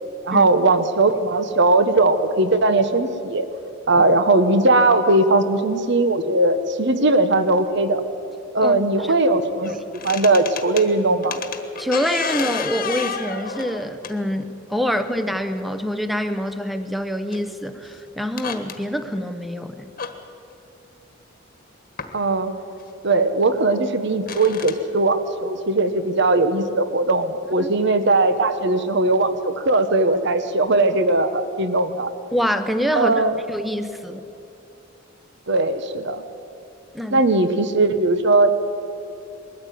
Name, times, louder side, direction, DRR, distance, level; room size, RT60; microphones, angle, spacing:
voice 1, 0.2-3.5 3.9-8.0 8.5-9.7 10.0-11.4 22.1-22.5 23.0-32.1 32.9-33.4 35.5-36.2 37.1-38.5, right 2 dB, 60° right, 10 dB, 1.1 m, -19 dB
voice 2, 8.6-9.1 9.7-9.8 11.8-19.9 27.6-27.7 32.3-33.2 33.5-34.2 36.9-37.2, equal, ahead, 10 dB, 0.8 m, -25 dB
sound 1, 9.6-10.9 11.2-14.5 15.6-15.7 17.3-17.4 17.8-17.9 18.2-18.8 20.0-20.1 22.0-22.1 22.8-22.9 24.2-24.8, left 6 dB, 45° left, 1.4 m, -30 dB
21.0 x 14.0 x 9.3 m, 2.7 s
head